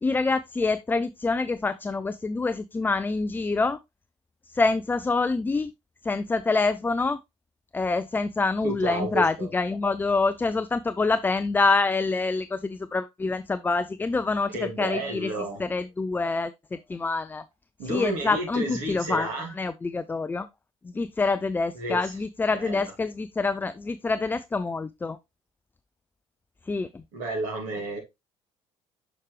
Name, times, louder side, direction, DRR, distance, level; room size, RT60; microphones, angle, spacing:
voice 1, 0.0-3.8 4.5-5.7 6.0-7.2 7.7-15.3 15.6-17.4 17.9-19.3 19.6-20.5 20.8-25.2 26.7-27.0, left 3 dB, 10° left, 0.3 m, -26 dB
voice 2, 8.6-9.5 14.5-15.6 17.8-19.5 21.7-22.0 22.5-22.8 27.1-28.0, right 2 dB, 55° right, 2.6 m, -31 dB
6.5 x 4.9 x 3.2 m
figure-of-eight pair, 55°, 16 cm